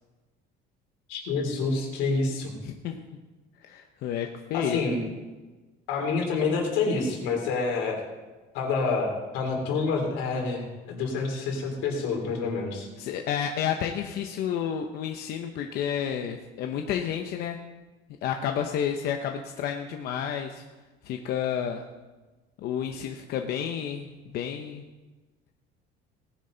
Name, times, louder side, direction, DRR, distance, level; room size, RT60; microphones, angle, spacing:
voice 1, 1.1-2.5 4.5-5.0 5.9-8.0 8.5-12.9, left 4 dB, 75° left, 1 dB, 3.3 m, -27 dB
voice 2, 2.6-3.0 3.6-4.8 13.0-17.6 18.2-20.6 21.0-21.8 22.6-24.8, left 8 dB, 55° left, 4 dB, 0.9 m, -30 dB
18.5 x 10.0 x 4.0 m, 1.2 s
cardioid pair, 170°, 20 cm